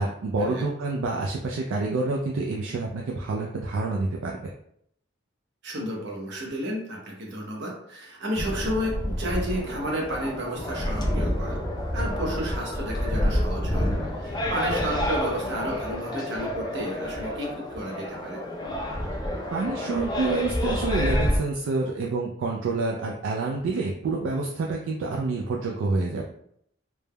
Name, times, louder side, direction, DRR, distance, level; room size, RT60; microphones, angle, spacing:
voice 1, 0.0-4.5 19.5-26.3, right 3 dB, 75° right, -1 dB, 0.3 m, -28 dB
voice 2, 5.6-11.6 11.9-18.4, equal, 60° right, -1 dB, 0.7 m, -32 dB
sound 1, 8.4-21.4, left 1 dB, 20° left, 0.4 m, -28 dB
3.2 x 2.0 x 2.2 m, 0.70 s
head